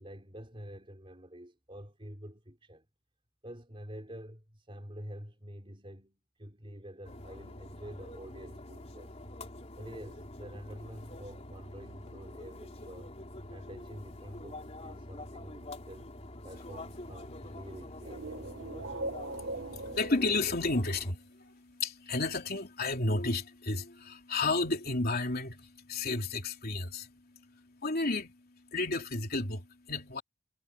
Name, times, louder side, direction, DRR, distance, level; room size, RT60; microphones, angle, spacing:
voice 1, 0.0-2.9 3.4-9.1 9.8-13.2 13.5-16.1 16.4-18.2, equal, 25° right, 4.8 m, -48 dB
sound 1, 7.0-21.1, left 1 dB, 35° left, 3.9 m, -46 dB
voice 2, 17.3-17.7 18.3-30.2, left 2 dB, 50° left, 3.4 m, -33 dB
sound 2, 18.0-21.0, right 2 dB, 65° right, 1.1 m, -40 dB
head